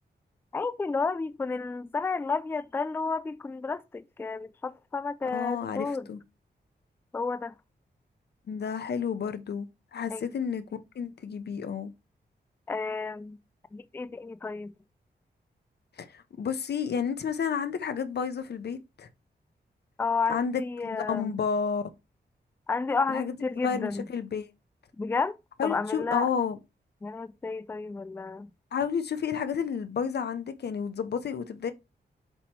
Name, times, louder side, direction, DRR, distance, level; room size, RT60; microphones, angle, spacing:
voice 1, 0.5-6.1 7.1-7.5 10.1-10.4 12.7-13.4 13.7-14.7 20.0-21.4 22.7-24.1 25.0-26.3 27.0-28.5, left 4 dB, 15° left, 0.3 m, -31 dB
voice 2, 5.2-6.2 8.5-11.9 16.0-19.1 20.3-21.8 23.1-23.3 23.6-24.5 25.6-26.6 28.7-31.7, left 7 dB, 70° left, 0.9 m, -31 dB
7.8 x 3.1 x 4.5 m
wide cardioid pair, 165°, 18 cm